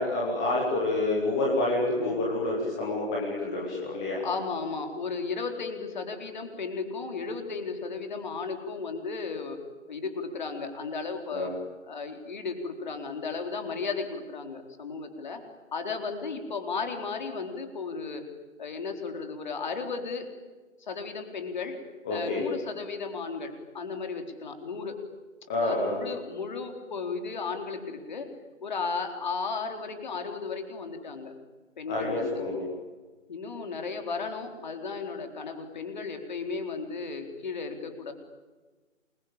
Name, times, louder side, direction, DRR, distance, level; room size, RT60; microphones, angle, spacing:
voice 1, 0.0-4.2 11.3-11.5 22.0-22.5 25.5-26.0 31.9-32.7, left 2 dB, 5° left, -3 dB, 1.0 m, -28 dB
voice 2, 4.2-9.6 9.9-11.5 11.9-15.4 15.7-18.3 18.6-20.3 20.8-21.8 22.1-25.0 25.6-28.3 28.6-31.3 31.8-32.4 33.3-38.1, left 4 dB, 35° left, 5 dB, 4.1 m, -34 dB
28.0 x 22.0 x 8.8 m, 1.3 s
figure-of-eight pair, 160°, 40 cm